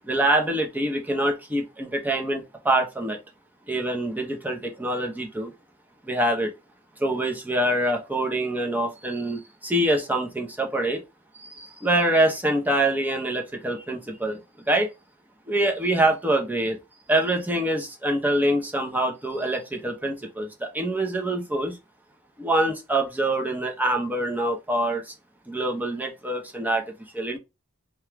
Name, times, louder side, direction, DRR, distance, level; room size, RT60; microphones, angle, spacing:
voice 1, 0.0-3.2 3.7-5.5 6.0-6.5 7.0-11.0 11.3-14.4 14.7-14.9 15.5-16.8 17.1-21.8 22.4-25.1 25.5-26.8 27.1-27.4, right 1 dB, 10° right, 0.6 m, -25 dB
2.9 x 2.3 x 3.4 m
head